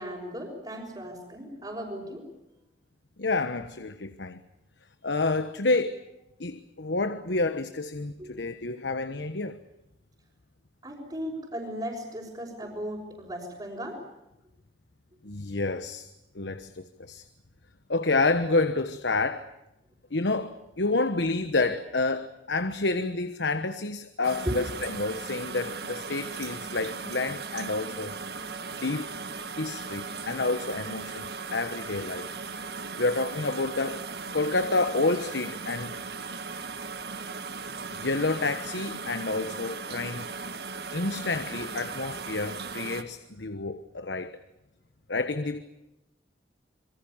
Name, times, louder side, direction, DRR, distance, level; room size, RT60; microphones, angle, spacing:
voice 1, 0.0-2.3 8.2-8.3 10.8-14.0 24.5-24.6, equal, 25° right, 5.4 m, -36 dB
voice 2, 3.2-4.4 5.0-6.0 6.4-9.6 15.2-17.2 17.9-19.5 20.1-28.1 28.8-29.1 29.6-32.3 33.0-34.1 34.3-35.9 37.9-40.3 40.9-44.4 45.1-45.6, left 3 dB, 85° left, 1.2 m, -29 dB
sound 1, 24.2-43.0, right 4 dB, 65° right, 1.8 m, -37 dB
27.5 x 23.0 x 7.2 m
head